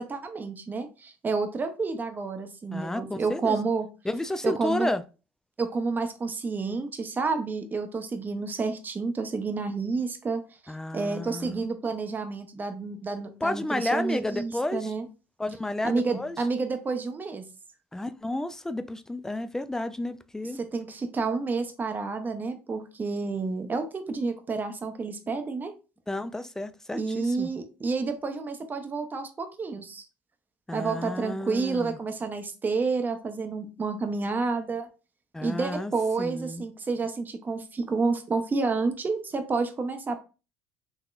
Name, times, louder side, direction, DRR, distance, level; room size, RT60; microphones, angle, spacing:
voice 1, 0.0-3.9 4.4-4.9 5.6-15.1 15.8-17.5 20.6-25.7 26.9-30.0 30.7-34.9 35.4-40.2, right 4 dB, 30° right, 0.7 m, -30 dB
voice 2, 2.7-3.6 4.0-5.0 10.7-11.6 13.4-14.9 15.4-16.4 17.9-20.6 26.1-27.5 30.7-32.0 35.3-35.9 36.2-36.6, left 1 dB, 10° left, 0.4 m, -31 dB
3.9 x 2.8 x 2.4 m
supercardioid pair, 80°, 7 cm